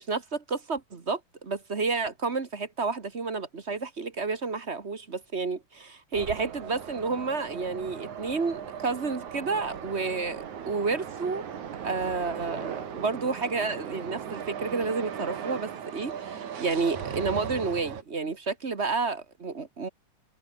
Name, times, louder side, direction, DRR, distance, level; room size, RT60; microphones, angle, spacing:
voice 1, 0.0-11.5 11.8-19.9, right 4 dB, 30° right, 1.3 m, -30 dB
sound 1, 6.1-18.0, right 8 dB, 80° right, 3.8 m, -38 dB
omnidirectional pair, 3.3 m